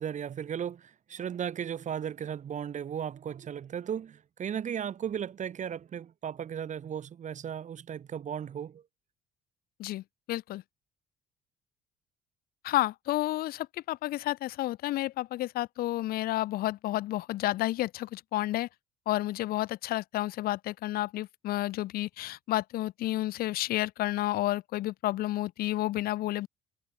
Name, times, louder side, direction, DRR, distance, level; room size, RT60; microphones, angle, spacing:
voice 1, 0.0-8.8, right 8 dB, 45° right, 2.9 m, -36 dB
voice 2, 9.8-10.6 12.6-18.7 19.1-26.5, left 16 dB, 65° left, 0.5 m, -31 dB
cardioid pair, 110°, 17 cm